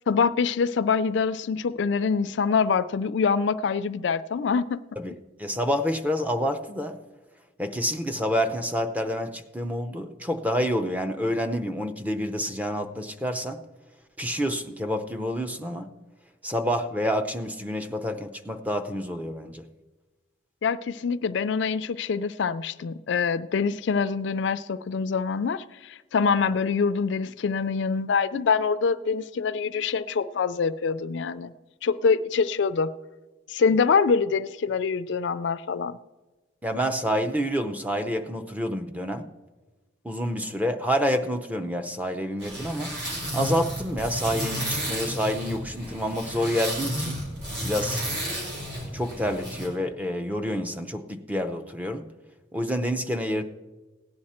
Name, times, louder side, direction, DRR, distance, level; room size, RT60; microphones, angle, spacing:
voice 1, 0.1-4.8 20.6-31.5 31.8-32.9 33.5-36.0, left 5 dB, 65° left, 0.4 m, -25 dB
voice 2, 5.4-7.0 7.6-13.6 14.2-15.9 16.4-19.7 36.6-39.3 40.0-42.9 43.3-47.2 47.6-48.0 48.9-52.1 52.5-53.4, equal, 10° right, 0.6 m, -28 dB
sound 1, 42.4-49.7, equal, 60° right, 4.3 m, -32 dB
17.0 x 9.6 x 4.3 m
head